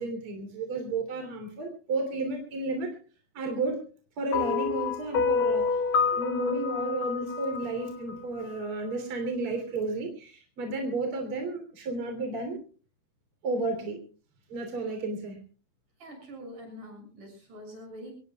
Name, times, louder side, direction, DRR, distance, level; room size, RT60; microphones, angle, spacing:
voice 1, 0.0-3.0 3.3-3.8 4.2-5.8 6.1-12.6 13.4-14.0 14.5-15.4, right 2 dB, 45° right, 5 dB, 4.0 m, -32 dB
sound 1, 4.3-8.7, left 5 dB, 85° left, 3.4 m, -28 dB
voice 2, 16.0-18.1, equal, 85° right, 2 dB, 8.7 m, -44 dB
24.0 x 20.0 x 2.3 m, 0.37 s
omnidirectional pair, 3.6 m